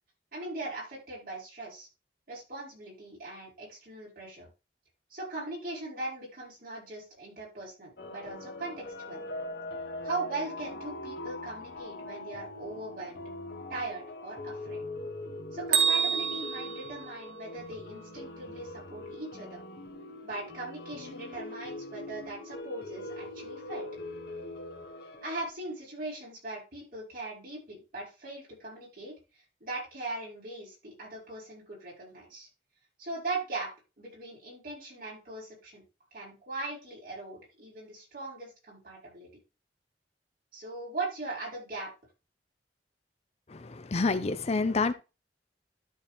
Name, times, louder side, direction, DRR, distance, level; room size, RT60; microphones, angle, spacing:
voice 1, 0.3-1.9 2.3-4.5 5.1-9.2 10.0-13.2 13.7-14.8 15.5-19.6 20.2-23.9 25.2-32.5 33.0-33.7 34.0-35.8 36.1-39.3 40.5-41.9, right 2 dB, 55° right, 6.0 m, -39 dB
sound 1, 8.0-25.5, left 1 dB, 60° left, 1.6 m, -42 dB
Bell, 15.7-17.8, right 7 dB, 75° right, 1.4 m, -29 dB
voice 2, 43.5-44.9, left 3 dB, 35° left, 0.5 m, -28 dB
12.5 x 4.6 x 3.5 m
head